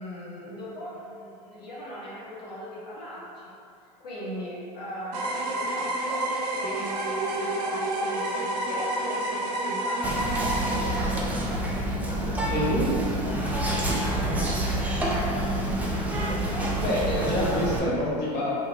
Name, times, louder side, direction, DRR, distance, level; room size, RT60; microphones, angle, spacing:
voice 1, 0.0-3.4 4.0-12.7 13.0-16.8 17.1-17.8, equal, 75° left, -8 dB, 0.9 m, -39 dB
sound 1, 5.1-10.8, right 1 dB, 70° right, 0.6 m, -29 dB
Whispering, 10.0-17.8, right 1 dB, 5° right, 0.4 m, -27 dB
voice 2, 12.5-13.0 16.8-18.5, equal, 45° left, -6 dB, 1.0 m, -26 dB
3.0 x 2.6 x 2.6 m, 2.5 s
hypercardioid pair, 85°, 21 cm